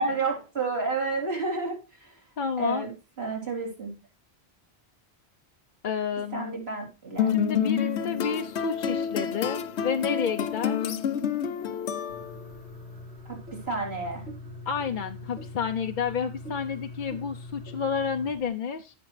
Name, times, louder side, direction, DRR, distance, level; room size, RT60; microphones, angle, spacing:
voice 1, 0.0-2.1 2.6-2.9 3.2-3.9 6.3-7.3 13.3-13.4 13.7-14.2, right 3 dB, 70° right, -1 dB, 3.7 m, -30 dB
voice 2, 2.4-2.9 5.8-6.6 7.3-10.8 14.7-18.9, left 6 dB, 55° left, 6 dB, 0.7 m, -30 dB
sound 1, 7.2-12.6, left 8 dB, 85° left, 1.0 m, -28 dB
sound 2, 12.1-18.5, left 2 dB, 90° right, 5.6 m, -42 dB
15.5 x 6.1 x 3.2 m, 0.30 s
omnidirectional pair, 1.1 m